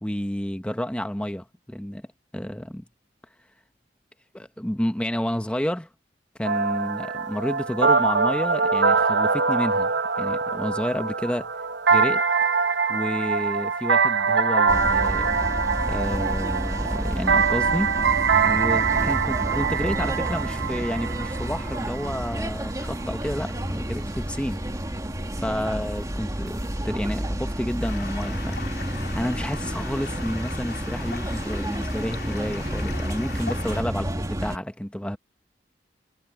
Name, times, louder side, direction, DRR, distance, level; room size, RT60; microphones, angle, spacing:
voice 1, 0.0-2.1 2.3-2.8 4.3-5.9 6.4-11.5 11.9-12.2 12.9-15.3 15.8-17.9 18.5-24.6 25.4-28.8 29.1-35.2, equal, 5° left, 0.9 m, -30 dB
sound 1, 6.4-22.2, right 5 dB, 90° right, 1.0 m, -23 dB
sound 2, 14.7-34.6, right 1 dB, 20° right, 1.8 m, -30 dB
Stream, 27.8-33.8, left 5 dB, 65° left, 3.2 m, -39 dB
head